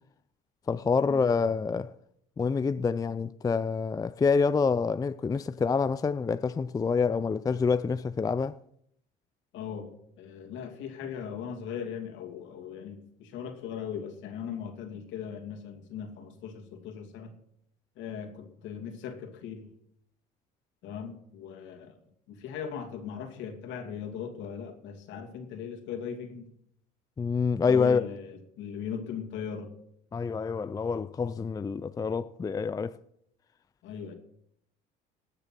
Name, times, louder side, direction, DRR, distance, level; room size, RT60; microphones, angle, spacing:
voice 1, 0.7-1.9 2.4-8.6 27.2-28.0 30.1-32.9, left 5 dB, 20° left, 0.4 m, -27 dB
voice 2, 9.5-17.4 18.0-19.7 20.8-22.0 22.3-26.5 27.6-29.7 33.8-34.2, left 7 dB, 70° left, 2.7 m, -39 dB
19.0 x 6.9 x 6.0 m
supercardioid pair, 90°, 20 cm